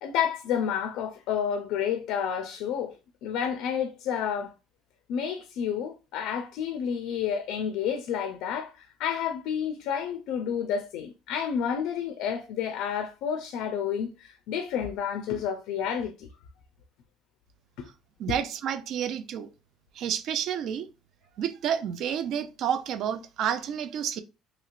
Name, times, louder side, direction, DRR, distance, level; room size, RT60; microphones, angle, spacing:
voice 1, 0.0-2.9 3.2-4.5 5.1-16.3 17.8-17.9, left 8 dB, 75° left, 0.4 m, -30 dB
voice 2, 18.2-19.5 20.0-20.9 21.4-24.2, right 9 dB, 55° right, 0.3 m, -30 dB
3.0 x 2.8 x 2.4 m
cardioid pair, 160°, 0 cm